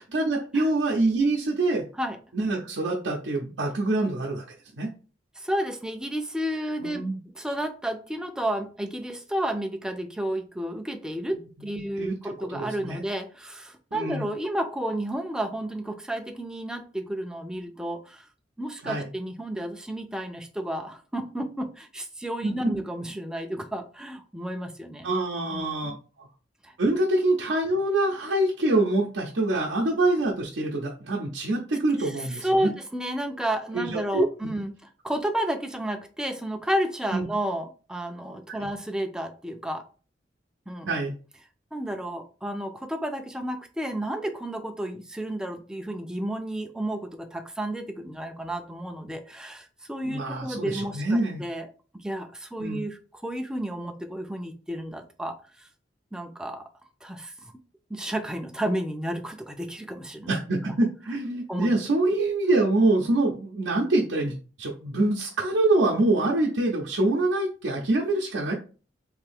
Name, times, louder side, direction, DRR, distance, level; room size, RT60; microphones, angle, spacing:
voice 1, 0.1-1.9 2.3-4.4 4.8-4.9 6.8-7.2 12.0-12.1 12.5-13.0 13.9-14.3 18.8-19.0 22.4-22.5 25.0-25.9 26.2-26.3 26.8-32.7 33.7-34.3 37.1-37.3 38.5-38.7 40.9-41.2 50.0-51.4 52.6-52.8 60.3-68.5, right 2 dB, 85° right, -2 dB, 0.6 m, -25 dB
voice 2, 5.4-7.1 7.3-18.3 18.6-25.1 25.5-26.0 26.6-26.7 32.0-32.1 32.4-34.7 35.0-39.9 40.7-40.9 41.7-51.7 51.9-55.7 56.1-56.6 57.0-57.5 57.9-60.3 61.5-61.7, right 1 dB, 5° right, 5 dB, 0.4 m, -31 dB
3.3 x 2.6 x 3.4 m, 0.36 s
head